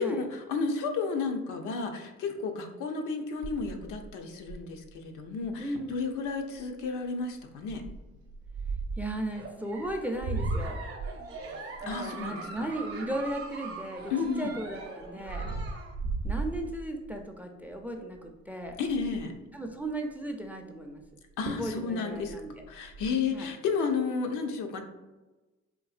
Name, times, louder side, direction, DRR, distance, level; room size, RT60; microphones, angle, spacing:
voice 1, 0.0-7.8 11.9-12.5 14.1-14.5 18.8-19.3 21.4-22.4 22.7-24.8, left 4 dB, 85° left, 4 dB, 0.5 m, -32 dB
sound 1, 3.4-4.9 5.4-5.5 5.8-6.0 6.5-6.8 7.7-9.1 9.8-13.7 14.2-17.2 17.7-18.0 18.2-18.3 18.6-19.4 21.0-21.1 21.5-21.8 22.1-23.1, right 3 dB, 90° right, 0.5 m, -36 dB
voice 2, 5.6-5.9 9.0-10.8 11.8-14.1 14.4-15.4 16.2-18.8 19.5-21.0 21.5-22.6 23.3-23.5, right 1 dB, 5° right, 3 dB, 0.3 m, -36 dB
Giggle, 9.2-15.9, right 3 dB, 50° right, 0.7 m, -42 dB
3.9 x 2.6 x 2.4 m, 1.1 s
cardioid pair, 90°, 30 cm